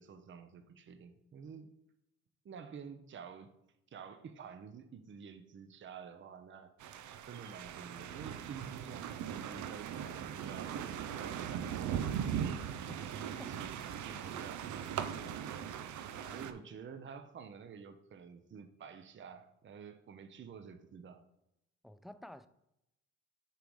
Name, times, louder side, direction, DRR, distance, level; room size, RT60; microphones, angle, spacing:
voice 1, 0.0-1.7 2.4-3.5 3.9-7.0 7.3-12.4 13.1-15.5 16.3-21.2, right 6 dB, 40° right, 0.7 m, -50 dB
sound 1, 6.8-16.5, right 9 dB, 75° right, 0.6 m, -39 dB
voice 2, 16.1-16.5 21.8-22.5, left 1 dB, ahead, 0.3 m, -51 dB
6.9 x 3.9 x 4.7 m
cardioid pair, 90°, 30 cm